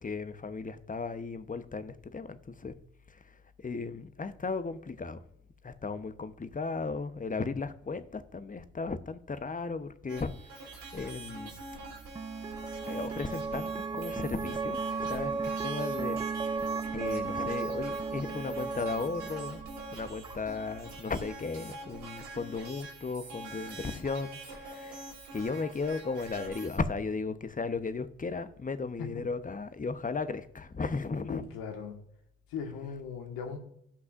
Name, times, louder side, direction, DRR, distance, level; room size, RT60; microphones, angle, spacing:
voice 1, 0.0-2.7 3.1-5.2 5.6-11.6 12.9-16.2 16.9-19.6 19.9-25.1 25.3-31.5, left 4 dB, 20° left, 1.0 m, -36 dB
sound 1, 10.1-26.8, right 2 dB, 70° right, 3.5 m, -45 dB
sound 2, 10.7-21.0, right 4 dB, 10° right, 0.3 m, -36 dB
voice 2, 31.3-32.0 32.5-33.6, left 6 dB, 65° left, 1.7 m, -38 dB
17.5 x 6.0 x 2.6 m
figure-of-eight pair, 40°, 37 cm